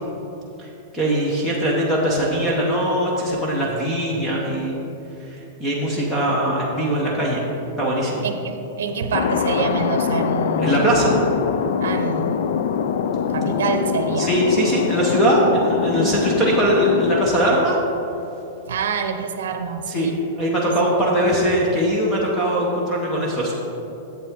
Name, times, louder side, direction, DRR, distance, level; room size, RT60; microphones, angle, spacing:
voice 1, 0.9-4.8 5.2-7.4 7.8-8.2 10.6-11.1 14.2-17.8 19.9-23.5, right 1 dB, 5° left, -5 dB, 0.8 m, -21 dB
voice 2, 8.2-10.9 11.8-12.4 13.3-14.3 18.7-20.3 20.6-20.7, right 5 dB, 80° right, 8 dB, 0.7 m, -26 dB
Thunder, 9.1-17.3, left 7 dB, 55° left, 0.3 m, -23 dB
8.5 x 7.4 x 3.6 m, 3.0 s
supercardioid pair, 175°, 0 cm